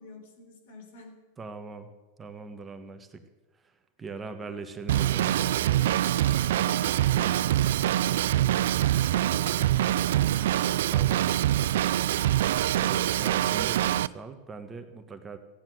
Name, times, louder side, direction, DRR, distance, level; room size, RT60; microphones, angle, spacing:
voice 1, 0.0-1.2 4.4-4.6 6.5-8.7 9.1-12.3, left 2 dB, 70° left, 4 dB, 3.9 m, -49 dB
voice 2, 1.4-1.9 2.2-3.2 3.5-5.8 10.9-11.2 12.7-15.4, right 4 dB, 20° right, 7 dB, 1.3 m, -41 dB
Drum kit / Drum, 4.9-14.1, right 12 dB, 75° right, 0.4 m, -24 dB
15.0 x 9.6 x 7.9 m, 1.2 s
hypercardioid pair, 115°, 0 cm